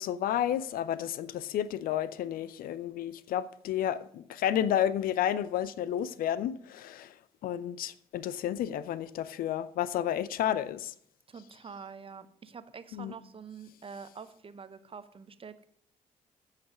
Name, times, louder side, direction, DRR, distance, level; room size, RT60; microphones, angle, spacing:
voice 1, 0.0-7.1 7.4-10.9 12.9-13.1, left 10 dB, 50° left, 0.5 m, -31 dB
voice 2, 11.3-15.7, right 5 dB, 30° right, 0.8 m, -46 dB
14.5 x 5.8 x 5.2 m
figure-of-eight pair, 40°, 18 cm